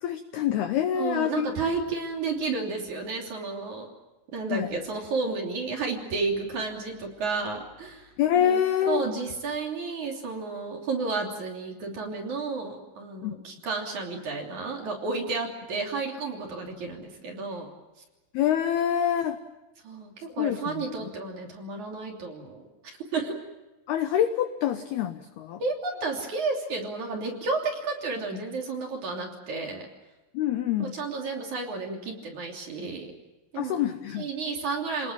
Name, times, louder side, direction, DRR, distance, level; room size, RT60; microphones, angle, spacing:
voice 1, 0.0-1.5 4.5-4.7 8.2-9.0 13.2-13.3 18.3-19.4 20.4-20.8 23.9-25.6 30.3-30.9 33.6-34.3, left 10 dB, 80° left, 9 dB, 2.3 m, -26 dB
voice 2, 0.9-3.9 4.3-8.6 8.9-17.7 19.8-22.6 23.1-23.4 25.6-29.8 30.8-33.1 33.5-33.8 34.2-35.1, right 4 dB, 40° right, 0 dB, 3.9 m, -32 dB
29.0 x 20.0 x 7.3 m, 1.1 s
omnidirectional pair, 5.8 m